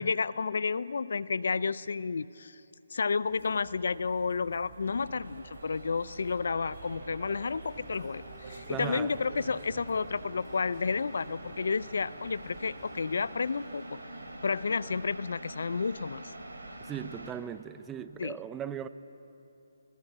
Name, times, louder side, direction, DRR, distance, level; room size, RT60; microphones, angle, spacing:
voice 1, 0.0-2.6 2.9-13.9 14.4-16.3 18.2-18.4, left 5 dB, 65° left, 18 dB, 0.6 m, -31 dB
sound 1, 3.2-13.3, right 3 dB, 50° right, 5.0 m, -49 dB
sound 2, 4.8-17.3, right 1 dB, 80° right, 4.1 m, -47 dB
sound 3, 7.7-14.7, equal, 10° left, 6.6 m, -54 dB
voice 2, 8.7-9.1 16.8-18.9, right 9 dB, 15° right, 13 dB, 0.7 m, -38 dB
21.0 x 19.0 x 8.6 m, 2.9 s
figure-of-eight pair, 145°, 0 cm